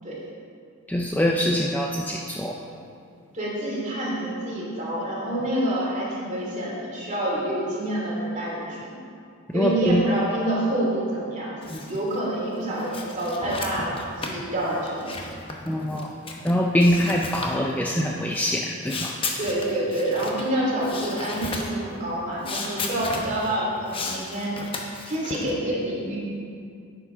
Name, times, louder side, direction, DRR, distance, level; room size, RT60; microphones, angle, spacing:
voice 1, 0.9-2.6 9.5-10.0 11.7-11.8 15.7-19.2, equal, 5° left, 0 dB, 0.4 m, -24 dB
voice 2, 3.3-8.8 9.5-11.5 11.9-15.0 19.3-24.5 25.1-26.2, right 1 dB, 35° right, -5 dB, 2.6 m, -27 dB
sound 1, 11.6-12.2 12.6-16.5 16.8-17.6 18.3-20.5 20.8-21.7 22.4-23.6 23.9-25.5, left 3 dB, 25° left, 0.9 m, -34 dB
10.5 x 7.3 x 4.9 m, 2.4 s
head